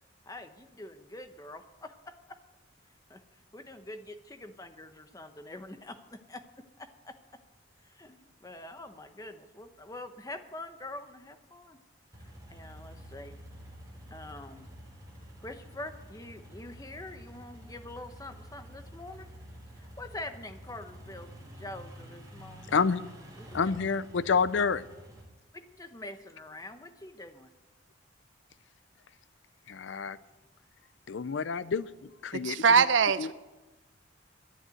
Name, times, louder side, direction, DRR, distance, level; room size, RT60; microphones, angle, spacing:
voice 1, 0.3-2.4 3.1-3.2 3.5-6.4 6.8-7.1 7.9-11.8 12.2-13.4 14.1-14.7 15.4-19.3 19.8-22.8 23.4-23.7 25.5-27.5, left 2 dB, 20° left, 0.9 m, -45 dB
sound 1, 12.1-25.2, equal, 20° right, 3.1 m, -49 dB
voice 2, 22.7-23.1 23.5-24.8 29.7-30.2 31.1-32.8 33.2-33.3, left 5 dB, 70° left, 0.5 m, -29 dB
voice 3, 32.3-33.3, right 6 dB, 75° right, 0.6 m, -23 dB
11.5 x 9.9 x 9.1 m
head